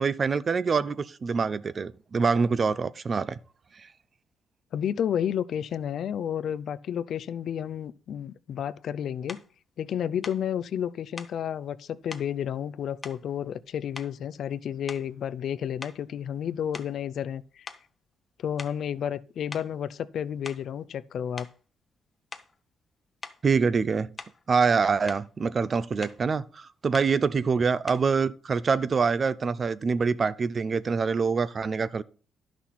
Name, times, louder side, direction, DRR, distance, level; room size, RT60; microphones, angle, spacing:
voice 1, 0.0-3.4 3.8-3.9 23.4-24.1 24.5-32.0, right 5 dB, 40° right, 0.5 m, -25 dB
voice 2, 4.7-9.4 9.8-17.7 18.4-21.5, left 9 dB, 65° left, 0.5 m, -31 dB
sound 1, 9.3-9.5 10.2-10.5 11.2-11.4 12.1-12.3 13.0-13.6 13.9-14.3 14.8-15.2 15.8-17.4 17.7-17.9 18.6-18.9 19.5-19.7 20.3-20.7 21.4-21.6 22.3-22.6 23.2-23.4 24.2-24.5 24.8-25.3 26.0-26.2 26.9-27.2 27.9-28.1, left 4 dB, 30° left, 0.9 m, -43 dB
11.0 x 6.1 x 4.2 m
cardioid pair, 90°, 0 cm